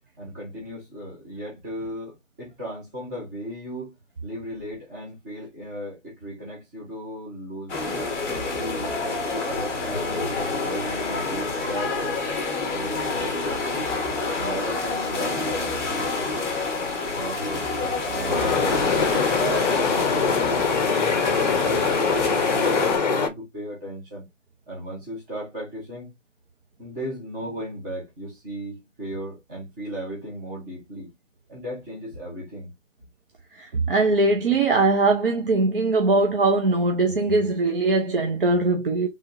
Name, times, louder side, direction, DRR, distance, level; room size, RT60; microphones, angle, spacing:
voice 1, 0.2-3.9 4.2-7.8 8.2-12.4 12.7-13.9 14.3-16.3 17.1-19.1 19.7-20.5 20.9-24.2 24.7-26.1 26.8-31.1 31.5-32.7, equal, 15° right, 0.9 m, -36 dB
sound 1, 7.7-23.0, left 3 dB, 15° left, 0.9 m, -28 dB
sound 2, 18.3-23.3, left 5 dB, 35° left, 0.7 m, -23 dB
voice 2, 33.5-39.1, right 3 dB, 45° right, 0.7 m, -21 dB
3.6 x 3.4 x 2.6 m
figure-of-eight pair, 145°, 37 cm